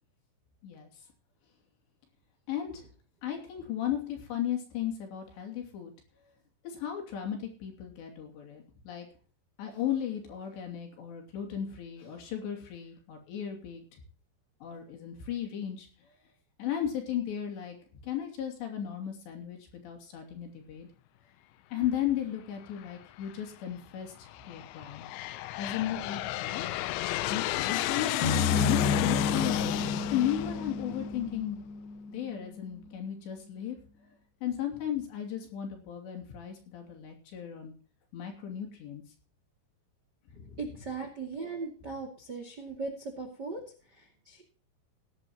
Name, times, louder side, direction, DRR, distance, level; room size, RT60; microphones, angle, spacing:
voice 1, 0.6-1.0 2.5-2.9 3.2-5.9 6.6-9.1 9.6-13.8 14.6-16.2 16.6-17.8 18.0-20.9 21.7-25.0 25.6-26.6 27.3-28.2 28.6-29.7 30.1-31.6 32.1-34.1 34.4-37.7 38.1-39.0 40.3-40.6, left 10 dB, 60° left, 2 dB, 4.8 m, -35 dB
Aircraft, 22.8-23.3 24.1-31.6, left 16 dB, 80° left, 2.6 m, -33 dB
sound 1, 28.2-32.6, left 4 dB, 40° left, 1.9 m, -31 dB
voice 2, 40.3-43.6 43.9-44.4, right 4 dB, 35° right, 4 dB, 1.6 m, -39 dB
18.5 x 11.0 x 3.0 m, 0.41 s
omnidirectional pair, 5.8 m